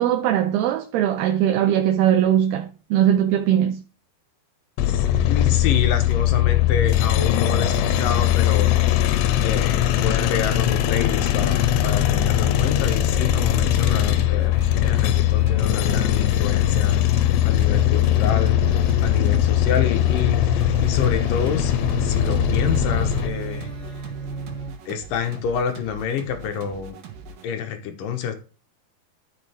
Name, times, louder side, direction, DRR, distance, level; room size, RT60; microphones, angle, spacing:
voice 1, 0.0-3.8, right 10 dB, 80° right, 2.6 m, -20 dB
sound 1, 4.8-23.3, left 11 dB, 85° left, 3.0 m, -20 dB
voice 2, 4.9-8.7 9.4-17.0 17.4-18.6 19.0-23.7 24.9-27.0 27.4-28.3, left 7 dB, 65° left, 2.4 m, -28 dB
sound 2, 8.2-24.7, right 2 dB, 20° left, 3.5 m, -37 dB
sound 3, 13.8-27.5, right 5 dB, 60° right, 3.3 m, -41 dB
13.0 x 6.5 x 3.5 m
omnidirectional pair, 4.9 m